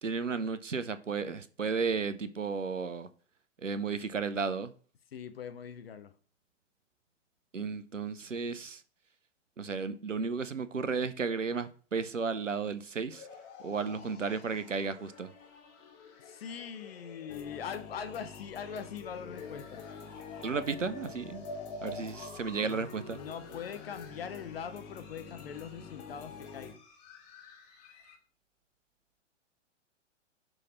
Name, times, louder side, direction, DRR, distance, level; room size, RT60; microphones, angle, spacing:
voice 1, 0.0-3.1 3.6-4.7 7.5-8.8 9.6-13.3 13.6-15.3 20.4-21.4 21.8-23.2, right 5 dB, 85° right, 0.6 m, -33 dB
voice 2, 5.1-6.1 13.7-14.2 16.2-19.9 22.6-26.8, left 7 dB, 55° left, 0.7 m, -42 dB
sound 1, 13.1-28.2, left 3 dB, 35° left, 1.3 m, -49 dB
sound 2, 17.3-26.7, left 4 dB, 15° left, 0.4 m, -48 dB
6.2 x 3.3 x 5.6 m
figure-of-eight pair, 110°, 36 cm